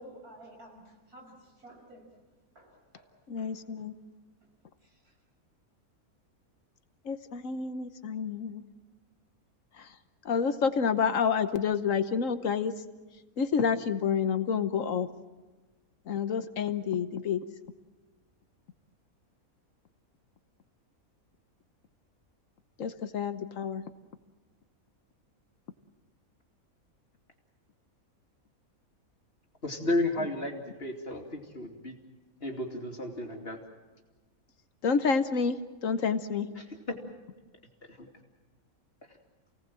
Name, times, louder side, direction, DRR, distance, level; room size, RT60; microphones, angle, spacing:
voice 1, 0.0-2.1 2.5-3.1 3.4-3.5 4.8-5.1, equal, 90° right, 1 dB, 6.2 m, -51 dB
voice 2, 3.3-3.9 7.0-8.6 9.8-9.9 10.2-12.7 13.4-15.1 16.1-17.4 22.8-23.8 34.8-36.5, left 6 dB, 65° left, 10 dB, 1.3 m, -29 dB
voice 3, 29.6-32.0 32.4-33.6 36.6-37.0 37.8-38.1, left 2 dB, 40° left, 2 dB, 2.9 m, -33 dB
29.0 x 18.0 x 7.5 m, 1.3 s
omnidirectional pair, 1.5 m